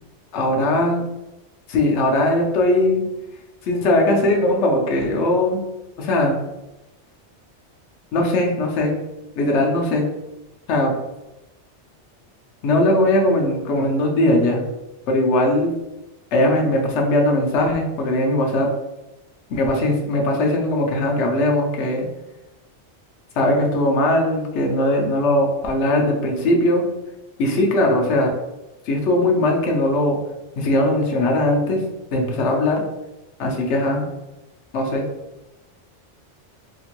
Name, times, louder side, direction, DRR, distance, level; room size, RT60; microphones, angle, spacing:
voice 1, 0.3-1.1 1.7-3.0 3.6-5.6 6.0-6.4 8.1-9.0 9.4-10.1 10.7-10.9 12.6-14.6 15.1-15.7 16.3-18.7 19.5-22.1 23.4-26.8 27.4-28.3 28.9-30.2 30.6-31.8 32.1-32.8 33.4-34.1 34.7-35.0, left 1 dB, 75° left, 1 dB, 1.0 m, -19 dB
2.9 x 2.5 x 2.9 m, 0.98 s
omnidirectional pair, 1.2 m